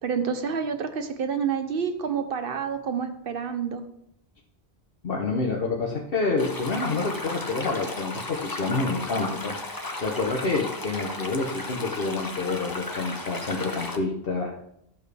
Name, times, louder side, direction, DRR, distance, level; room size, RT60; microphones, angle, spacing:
voice 1, 0.0-3.8, right 6 dB, 60° right, 8 dB, 1.1 m, -28 dB
voice 2, 5.0-14.6, left 3 dB, 60° left, -1 dB, 1.2 m, -28 dB
sound 1, 6.4-14.0, left 2 dB, 20° left, 0.8 m, -35 dB
12.0 x 7.2 x 3.3 m, 0.73 s
omnidirectional pair, 1.1 m